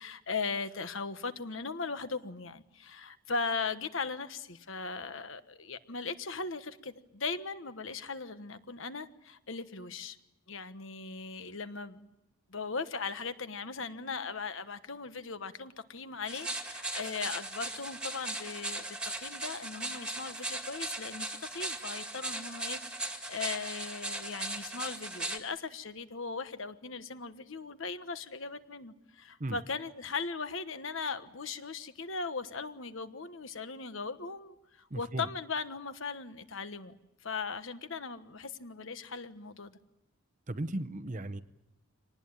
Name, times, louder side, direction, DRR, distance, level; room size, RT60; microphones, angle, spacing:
voice 1, 0.0-10.2 10.5-12.1 12.5-36.9 37.2-39.8, left 4 dB, 65° left, 11 dB, 1.3 m, -38 dB
sound 1, 16.3-25.4, right 2 dB, 5° right, 1.9 m, -38 dB
voice 2, 34.9-35.2 40.5-41.4, right 1 dB, 35° right, 13 dB, 0.8 m, -36 dB
25.5 x 19.0 x 8.9 m, 0.92 s
head